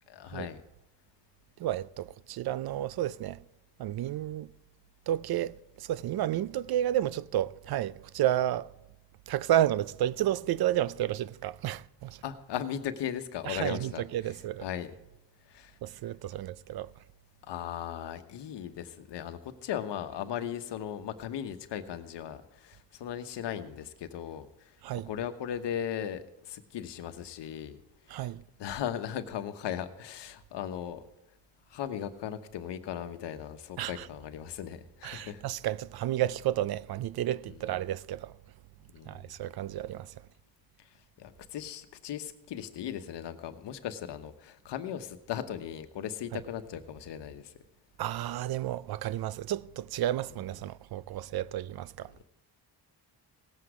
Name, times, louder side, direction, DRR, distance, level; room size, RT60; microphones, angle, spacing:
voice 1, 0.1-0.6 12.2-14.0 14.6-14.9 15.5-15.8 17.4-24.7 25.0-27.8 28.0-28.3 28.6-31.0 31.7-35.4 37.5-37.7 38.9-39.3 40.8-40.9 41.2-47.5, left 9 dB, 85° left, 1.1 m, -37 dB
voice 2, 1.6-3.4 3.8-4.5 5.1-8.7 9.3-12.2 13.4-14.7 15.8-16.9 24.8-25.1 28.1-28.4 33.8-34.1 35.0-38.3 39.1-40.2 48.0-52.1, right 12 dB, 60° right, 0.5 m, -31 dB
18.0 x 8.1 x 4.9 m
cardioid pair, 105°, 41 cm